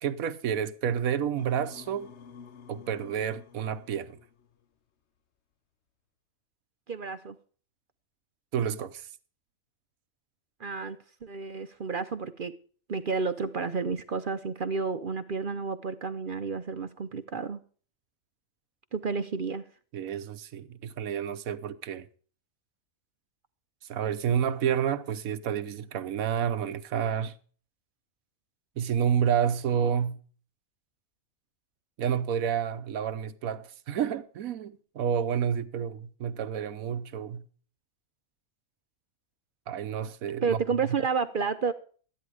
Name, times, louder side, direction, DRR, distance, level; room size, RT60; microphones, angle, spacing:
voice 1, 0.0-2.1 2.7-4.2 8.5-9.1 19.9-22.1 23.9-27.4 28.8-30.2 32.0-37.4 39.7-40.6, right 8 dB, 85° right, 1.3 m, -29 dB
sound 1, 1.4-4.6, left 6 dB, 55° left, 1.2 m, -49 dB
voice 2, 6.9-7.4 10.6-12.5 12.9-17.6 18.9-19.7 40.4-41.7, right 5 dB, 50° right, 0.7 m, -31 dB
13.5 x 10.5 x 4.8 m
omnidirectional pair, 1.4 m